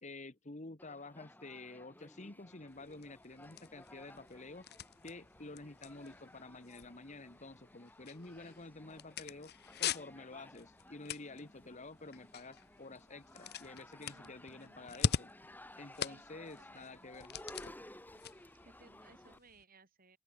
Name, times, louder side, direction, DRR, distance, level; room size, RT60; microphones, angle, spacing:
voice 1, 0.0-4.7 5.0-9.5 9.8-15.3 15.8-17.4, left 2 dB, 35° left, 1.4 m, -50 dB
sound 1, 0.8-19.4, left 1 dB, 10° left, 5.6 m, -57 dB
sound 2, 2.7-19.6, left 6 dB, 50° left, 0.8 m, -44 dB
voice 2, 14.1-14.9 16.1-17.1 18.6-20.2, right 3 dB, 45° right, 6.0 m, -63 dB
open air
head